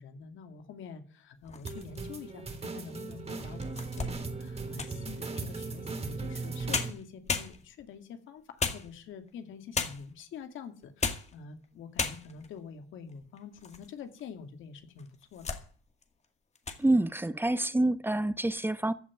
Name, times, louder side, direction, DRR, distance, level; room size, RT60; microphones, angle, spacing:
voice 1, 0.0-15.6, left 6 dB, 80° left, 2.4 m, -46 dB
sound 1, 1.4-2.2 2.8-2.9 3.4-5.1 6.4-6.5 6.7-7.9 8.6-9.3 9.7-10.2 10.8-11.4 11.6-11.7 12.0-12.5 13.1-13.9 14.2-14.3 15.0-15.7 16.0-16.2 16.5-16.8, left 4 dB, 35° left, 2.1 m, -35 dB
sound 2, 1.6-6.9, right 3 dB, 30° right, 3.0 m, -38 dB
voice 2, 16.8-18.9, right 2 dB, 10° right, 0.9 m, -27 dB
15.0 x 6.0 x 9.5 m
cardioid pair, 90°, 20 cm